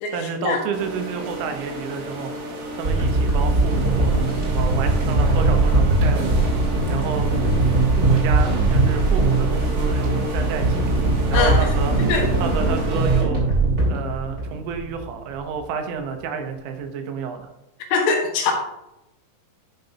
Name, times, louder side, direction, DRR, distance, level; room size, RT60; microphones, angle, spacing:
voice 1, 0.1-2.3 2.8-6.4 6.9-7.5 8.0-10.9 11.3-12.0 12.4-13.4 13.9-17.5, right 6 dB, 85° right, 5 dB, 3.4 m, -30 dB
sound 1, 0.7-13.2, right 1 dB, 60° right, 1.6 m, -32 dB
sound 2, 2.8-15.1 15.6-15.7, right 2 dB, 20° right, 3.3 m, -20 dB
voice 2, 11.3-11.7 12.1-12.3 17.9-18.5, left 5 dB, 75° left, 0 dB, 3.7 m, -21 dB
12.5 x 6.7 x 2.9 m, 0.90 s
omnidirectional pair, 5.2 m